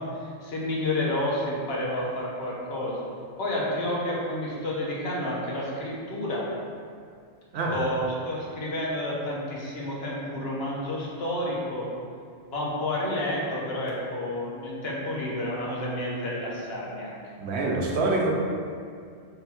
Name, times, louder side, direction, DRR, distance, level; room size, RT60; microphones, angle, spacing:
voice 1, 0.0-3.1 3.4-6.5 7.7-11.9 12.5-17.2, left 1 dB, 70° left, -4 dB, 1.0 m, -30 dB
voice 2, 17.4-18.3, right 2 dB, 75° right, -1 dB, 0.9 m, -25 dB
3.8 x 2.3 x 4.2 m, 2.2 s
omnidirectional pair, 1.1 m